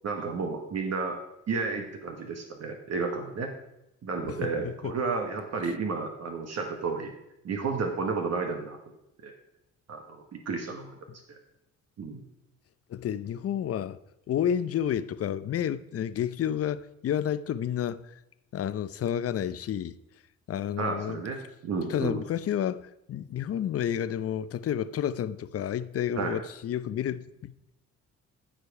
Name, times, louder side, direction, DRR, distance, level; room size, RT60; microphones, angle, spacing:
voice 1, 0.0-1.2 1.5-3.5 4.0-7.1 7.4-8.8 9.2-9.3 9.9-11.0 11.3-11.4 12.0-12.2 20.8-22.2 26.2-26.4, right 4 dB, 55° right, 1.4 m, -32 dB
voice 2, 4.3-4.9 12.9-14.0 14.3-18.2 18.5-20.0 20.5-21.2 21.9-27.7, left 9 dB, 50° left, 0.6 m, -30 dB
14.5 x 5.1 x 4.8 m
cardioid pair, 90°, 30 cm